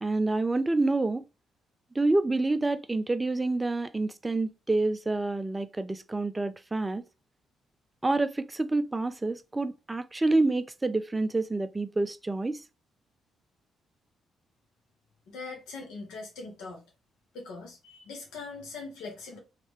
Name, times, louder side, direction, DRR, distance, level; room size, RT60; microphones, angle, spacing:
voice 1, 0.0-1.2 2.0-7.0 8.0-12.6, right 2 dB, 15° right, 0.4 m, -28 dB
voice 2, 15.3-16.8 17.3-19.4, left 3 dB, 90° left, 1.4 m, -41 dB
3.2 x 3.2 x 3.0 m
cardioid pair, 90°, 0 cm